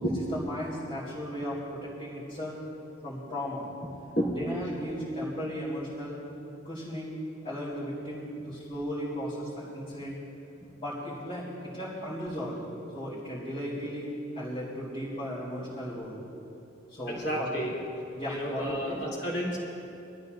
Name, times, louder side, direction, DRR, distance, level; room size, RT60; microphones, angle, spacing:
voice 1, 0.3-2.6 3.0-3.7 4.3-6.2 6.6-10.2 10.7-12.6 12.9-16.2 16.9-17.6 18.1-19.0, equal, 30° left, -11 dB, 3.1 m, -36 dB
voice 2, 17.1-17.7 18.3-19.6, equal, 55° left, -4 dB, 3.2 m, -30 dB
23.5 x 13.5 x 2.6 m, 2.9 s
head